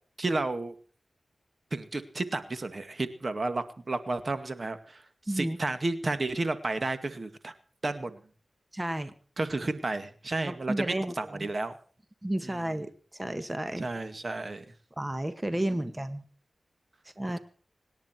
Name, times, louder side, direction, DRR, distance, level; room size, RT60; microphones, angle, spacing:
voice 1, 0.2-0.7 1.7-7.5 7.8-8.2 9.4-11.8 12.4-12.6 13.8-14.7 17.3-17.4, right 2 dB, 50° right, 10 dB, 2.0 m, -32 dB
voice 2, 5.3-5.6 8.7-9.1 10.4-11.5 12.2-12.9 13.1-13.8 15.0-16.2 17.2-17.4, right 1 dB, 20° right, 10 dB, 1.8 m, -32 dB
26.0 x 10.5 x 4.5 m, 0.42 s
cardioid pair, 60°, 0 cm